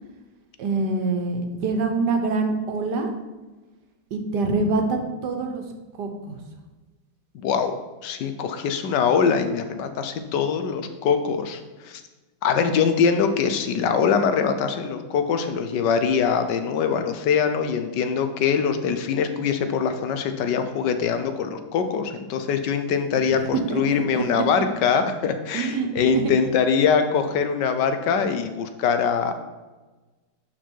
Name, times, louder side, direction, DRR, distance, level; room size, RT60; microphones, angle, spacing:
voice 1, 0.6-3.1 4.1-5.6 6.0-6.4 23.1-23.2 23.5-24.4 25.5-25.9 26.1-26.3, right 3 dB, 70° right, 5 dB, 1.5 m, -25 dB
voice 2, 7.3-7.8 8.0-12.0 12.4-29.3, left 6 dB, 75° left, 8 dB, 1.4 m, -23 dB
11.0 x 4.6 x 4.6 m, 1.2 s
omnidirectional pair, 1.9 m